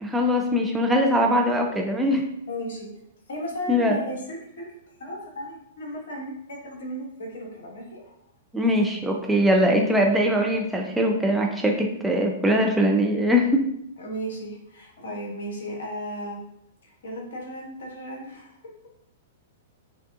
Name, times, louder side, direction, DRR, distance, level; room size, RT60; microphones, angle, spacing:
voice 1, 0.0-2.2 3.7-4.0 8.5-13.6, equal, 5° right, 1 dB, 0.4 m, -21 dB
voice 2, 1.1-1.4 2.5-2.9 3.3-8.2 14.0-16.4 16.8-18.6, equal, 60° left, 0 dB, 1.0 m, -35 dB
4.8 x 2.3 x 2.6 m, 0.76 s
figure-of-eight pair, 105°, 0 cm